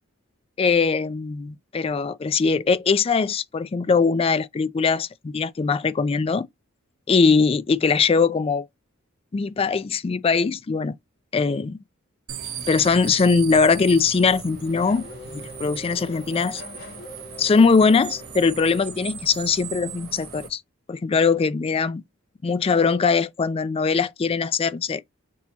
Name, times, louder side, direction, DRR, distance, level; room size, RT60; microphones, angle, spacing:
voice 1, 0.6-6.5 7.1-8.7 9.3-10.9 11.3-11.8 12.7-15.0 15.3-16.6 17.4-20.6 20.9-22.0 22.4-25.0, left 5 dB, 25° left, 0.3 m, -21 dB
Bad Brakes, 12.3-20.5, right 7 dB, 85° right, 1.3 m, -38 dB
Race car auto racing / Accelerating revving vroom, 13.7-19.1, left 1 dB, 50° left, 3.3 m, -43 dB
6.1 x 2.9 x 2.7 m
head